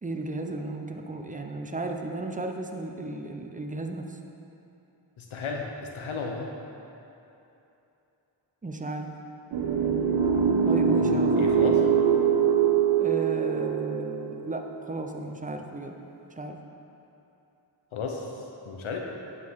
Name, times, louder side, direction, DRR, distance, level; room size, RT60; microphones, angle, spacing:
voice 1, 0.0-4.2 8.6-9.2 10.6-11.8 13.0-16.0 16.4-16.6, right 2 dB, 15° right, 4 dB, 0.7 m, -34 dB
voice 2, 5.2-5.7 5.9-6.5 11.4-11.8 17.9-18.3 18.7-19.0, left 5 dB, 85° left, 1 dB, 0.9 m, -33 dB
sound 1, 9.5-14.6, right 7 dB, 85° right, 0.8 m, -23 dB
9.2 x 6.8 x 3.7 m, 2.9 s
cardioid pair, 55°, 47 cm